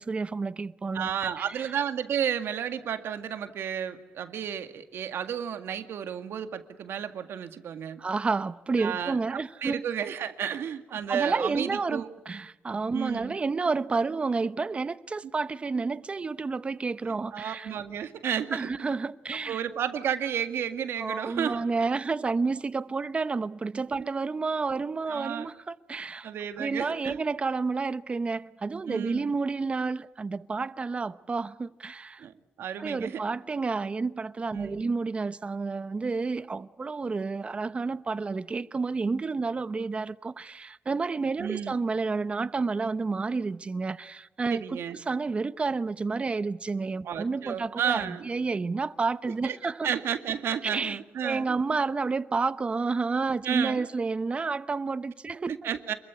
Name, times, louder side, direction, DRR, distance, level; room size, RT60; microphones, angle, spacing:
voice 1, 0.0-1.6 8.0-9.8 11.1-17.7 18.5-19.6 21.0-26.3 26.6-32.3 32.8-49.9 50.6-51.0 51.2-55.5, right 4 dB, 30° right, 0.9 m, -30 dB
voice 2, 0.9-8.0 8.8-12.1 12.9-13.4 17.3-18.9 19.5-21.6 23.9-24.1 25.1-25.5 26.2-27.2 28.9-29.3 32.2-32.3 32.6-33.2 34.5-34.9 41.4-41.8 44.5-45.0 47.0-48.3 49.4-49.6 49.8-51.6 53.4-53.9 55.6-55.9, right 8 dB, 85° right, 2.0 m, -32 dB
28.0 x 22.0 x 8.3 m
wide cardioid pair, 130°, 4 cm